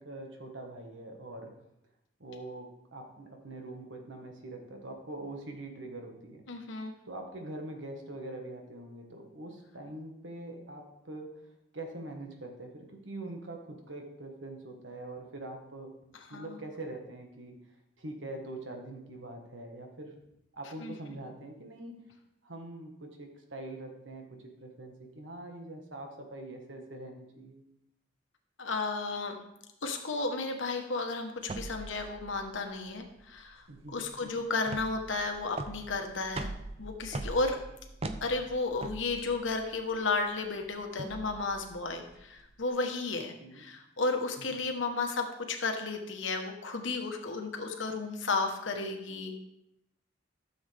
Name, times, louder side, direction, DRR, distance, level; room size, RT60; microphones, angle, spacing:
voice 1, 0.0-1.5 2.2-6.4 7.0-11.3 11.7-15.9 16.3-17.6 18.0-20.1 20.5-22.0 22.4-27.6 33.7-34.3 43.4-43.7 44.4-44.6, right 2 dB, 85° right, 3 dB, 1.6 m, -43 dB
voice 2, 6.5-6.9 16.3-16.5 20.8-21.2 28.6-29.4 29.8-33.6 33.9-36.5 36.8-37.6 38.2-49.4, left 3 dB, 90° left, 4 dB, 1.3 m, -33 dB
sound 1, 31.4-42.6, right 2 dB, 30° right, 0.5 m, -42 dB
12.5 x 7.2 x 3.5 m, 0.83 s
head